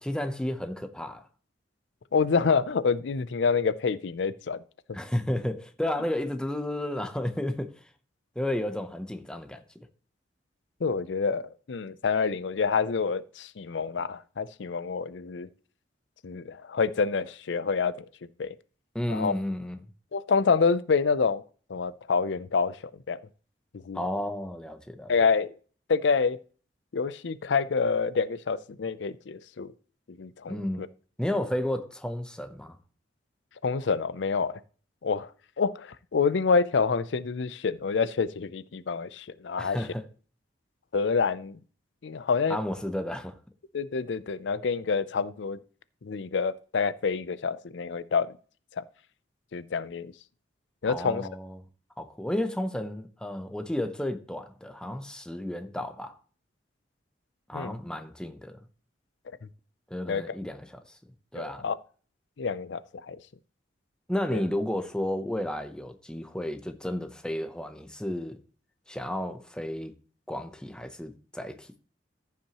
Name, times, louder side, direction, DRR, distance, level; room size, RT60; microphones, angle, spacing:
voice 1, 0.0-1.3 4.9-7.9 8.4-9.6 18.9-19.8 23.9-25.1 30.5-30.8 31.2-32.8 39.6-40.0 42.5-43.4 50.9-51.6 52.0-56.2 57.5-58.6 59.9-61.0 61.3-61.7 64.1-68.4 68.9-69.9 70.3-71.7, left 1 dB, 5° left, 0.7 m, -32 dB
voice 2, 2.1-4.6 10.8-15.5 16.2-18.1 18.4-18.5 19.1-19.3 20.1-21.4 21.7-22.8 23.1-23.2 23.9-24.0 25.1-25.5 25.9-26.4 26.9-29.7 30.2-30.9 33.6-34.6 35.0-35.3 35.6-39.8 40.9-41.6 42.0-42.6 43.7-45.6 46.0-48.3 48.8-48.9 49.5-50.1 50.8-51.3 57.5-57.7 60.1-60.4 61.4-61.8 62.4-63.2 64.3-64.4, left 5 dB, 75° left, 0.5 m, -27 dB
14.5 x 5.8 x 3.0 m
head